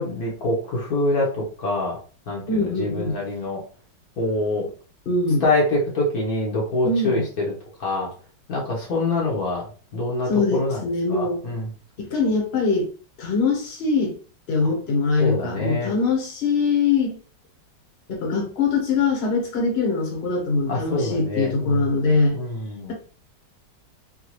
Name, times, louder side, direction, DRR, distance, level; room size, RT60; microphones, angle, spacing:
voice 1, 0.0-2.0 2.3-3.6 4.2-4.6 5.4-7.5 7.8-8.1 8.5-9.6 9.9-11.7 15.2-15.9 20.7-22.9, left 2 dB, 60° left, -3 dB, 1.3 m, -25 dB
voice 2, 2.5-3.1 5.1-5.5 6.8-7.2 10.2-11.4 12.0-12.9 13.2-14.1 14.5-17.2 18.1-22.4, left 4 dB, 40° left, 0 dB, 1.1 m, -22 dB
3.9 x 2.2 x 3.0 m, 0.38 s
omnidirectional pair, 1.9 m